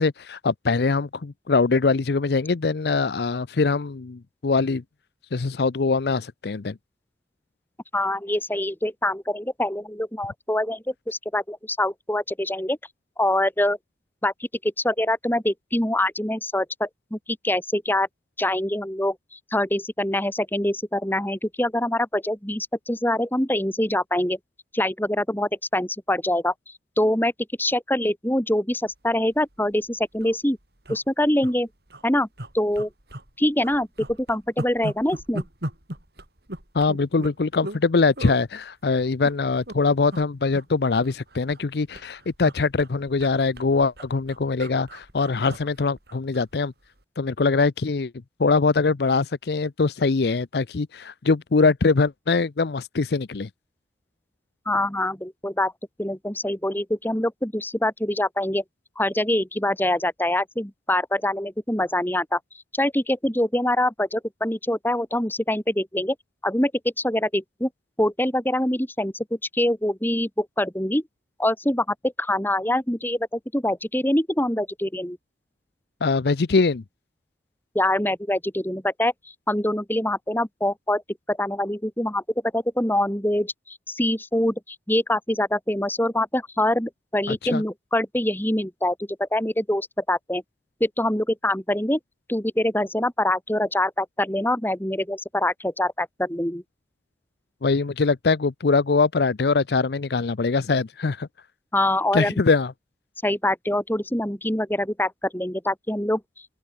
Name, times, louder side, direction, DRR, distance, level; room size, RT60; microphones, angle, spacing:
voice 1, 0.0-4.8 5.3-6.8 36.7-46.7 47.2-48.1 48.4-53.5 76.0-76.8 87.3-87.6 97.6-101.3 102.1-102.7, left 4 dB, 65° left, 0.6 m, -22 dB
voice 2, 7.9-12.8 13.2-13.8 14.2-14.3 14.6-18.1 18.4-24.4 24.7-26.5 27.0-27.3 27.6-30.6 30.9-31.7 32.0-32.3 32.5-32.9 33.4-35.4 54.7-55.7 56.0-58.6 59.0-62.4 62.7-66.1 66.4-66.7 67.0-67.7 68.0-69.2 69.5-71.0 71.4-75.2 77.7-79.1 79.5-81.0 81.3-82.2 82.5-90.4 90.8-92.0 92.3-96.6 101.7-102.4 103.2-106.2, left 1 dB, 10° left, 3.1 m, -24 dB
sound 1, 29.4-29.6 29.8-29.9 30.1-30.4 30.8-31.5 31.9-32.0 32.4-33.3 33.6-37.8 38.2-38.4 39.0-39.8 40.1-40.3 40.5-41.7 41.9-46.5 46.8-47.0, right 1 dB, 65° right, 4.6 m, -37 dB
open air
head